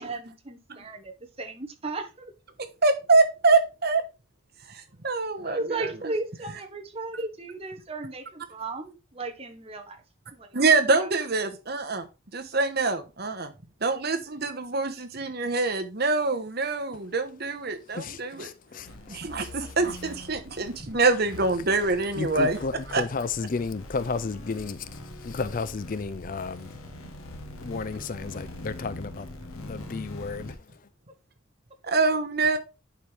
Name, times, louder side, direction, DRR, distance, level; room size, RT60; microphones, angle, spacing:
voice 1, 0.0-2.3 5.4-10.0 10.3-10.6 11.0-11.1, right 3 dB, 30° right, 1.2 m, -35 dB
voice 2, 2.8-4.0 4.7-5.9 10.5-12.0 12.3-13.5 13.8-18.5 19.1-22.6 22.9-23.0 31.8-32.6, right 3 dB, 50° right, 1.1 m, -25 dB
voice 3, 17.9-19.5 21.6-26.8 27.6-30.9, left 4 dB, 40° left, 0.4 m, -33 dB
sound 1, 18.8-30.6, left 1 dB, 90° left, 1.3 m, -43 dB
10.5 x 4.6 x 3.4 m
head